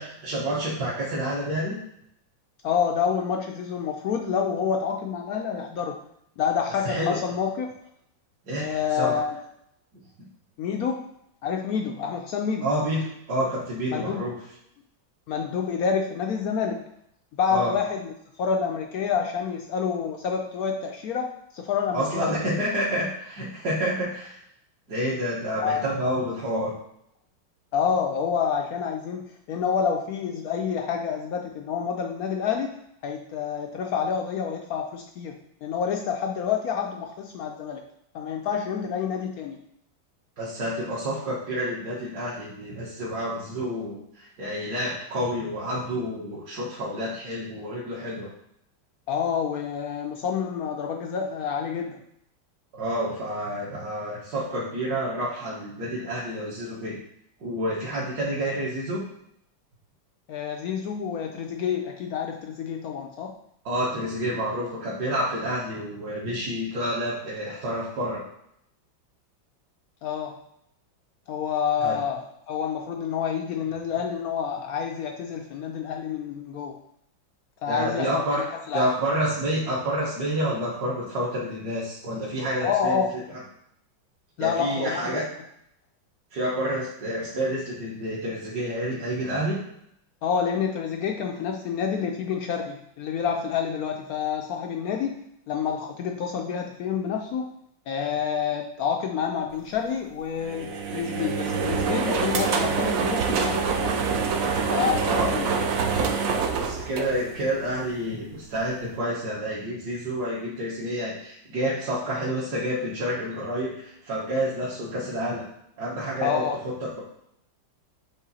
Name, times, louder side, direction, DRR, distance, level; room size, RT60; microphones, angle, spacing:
voice 1, 0.0-1.8 6.8-7.2 8.5-9.2 12.6-14.3 17.5-17.7 21.9-24.4 24.9-26.7 40.4-48.3 52.7-57.0 57.4-59.0 63.7-68.3 71.8-72.0 77.7-78.4 78.7-83.1 84.4-85.2 86.3-89.6 105.0-105.3 106.5-115.4 115.8-117.0, equal, 55° right, -8 dB, 1.7 m, -29 dB
voice 2, 2.6-6.0 6.4-7.7 8.6-9.3 10.6-11.1 11.4-12.7 13.9-14.2 15.3-16.8 17.4-22.4 25.6-25.9 27.7-32.8 33.0-37.8 38.1-39.6 49.1-52.0 60.3-63.3 70.0-70.4 71.3-76.8 77.6-78.9 82.6-83.1 84.4-85.2 90.2-95.2 95.5-97.5 97.9-104.0 104.7-105.5 116.2-116.5, left 7 dB, 80° left, 2 dB, 0.8 m, -28 dB
sound 1, 100.4-107.7, right 5 dB, 70° right, 0.8 m, -26 dB
7.6 x 3.3 x 4.1 m, 0.74 s
omnidirectional pair, 2.1 m